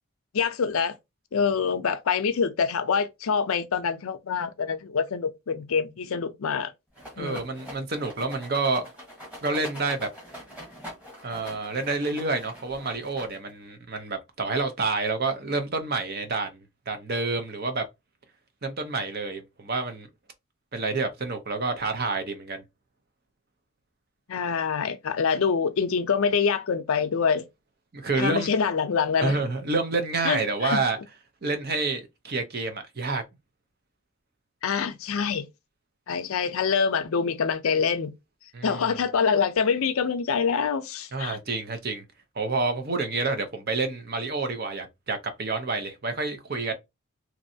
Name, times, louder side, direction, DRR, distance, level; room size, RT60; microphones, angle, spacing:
voice 1, 0.3-0.9 1.3-6.7 7.2-7.4 24.3-27.4 28.2-29.4 30.2-30.8 34.6-35.4 36.1-38.1 38.6-41.4, left 6 dB, 75° left, 0.5 m, -25 dB
Rattle, 6.9-13.6, equal, 5° right, 1.2 m, -43 dB
voice 2, 7.2-8.9 9.4-10.1 11.2-16.6 16.9-17.8 18.6-20.1 20.7-22.6 27.9-28.5 29.2-31.0 31.4-33.2 38.5-38.9 41.1-42.0 42.4-46.7, right 3 dB, 45° right, 0.7 m, -28 dB
3.0 x 2.6 x 2.7 m
head